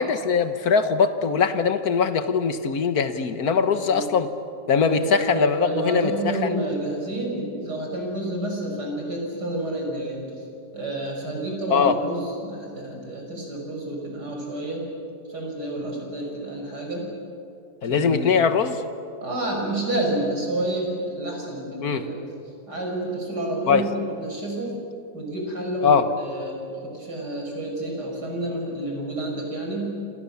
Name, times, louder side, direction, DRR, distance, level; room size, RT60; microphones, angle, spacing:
voice 1, 0.0-4.3 4.7-6.5 11.7-11.9 17.8-18.8 21.8-22.0 23.7-23.8 25.8-26.1, left 6 dB, 65° left, 9 dB, 1.8 m, -21 dB
voice 2, 4.9-10.4 10.7-14.8 15.3-17.1 17.9-18.3 19.2-22.2 22.7-24.8 25.1-30.0, right 1 dB, 75° right, 0 dB, 7.0 m, -29 dB
28.0 x 27.5 x 7.2 m, 2.6 s
omnidirectional pair, 1.8 m